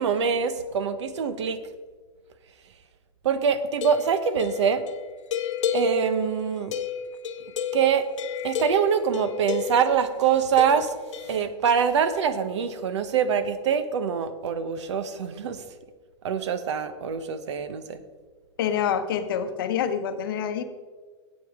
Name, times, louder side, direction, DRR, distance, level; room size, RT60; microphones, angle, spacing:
voice 1, 0.0-1.6 3.2-4.8 5.7-6.8 7.7-8.1 8.4-10.9 11.3-15.6 16.2-18.0, right 7 dB, 70° right, 11 dB, 0.9 m, -24 dB
sound 1, 3.7-10.0 10.6-11.4, left 8 dB, 80° left, 1.0 m, -32 dB
voice 2, 18.6-20.6, left 8 dB, 50° left, 8 dB, 0.8 m, -26 dB
14.0 x 8.5 x 3.6 m, 1.5 s
supercardioid pair, 175°, 15 cm